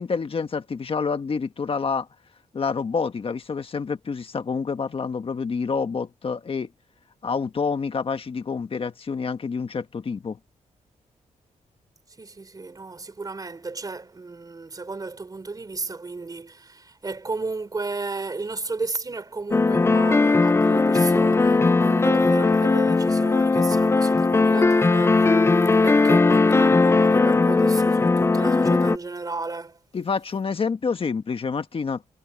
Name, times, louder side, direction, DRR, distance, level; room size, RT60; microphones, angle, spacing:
voice 1, 0.0-2.1 2.5-6.7 7.2-10.4 29.9-32.0, left 5 dB, 40° left, 1.5 m, -28 dB
voice 2, 12.2-25.5 25.8-29.8, right 3 dB, 25° right, 3.7 m, -33 dB
sound 1, 19.5-29.0, left 3 dB, 20° left, 0.5 m, -18 dB
cardioid pair, 110°, 14 cm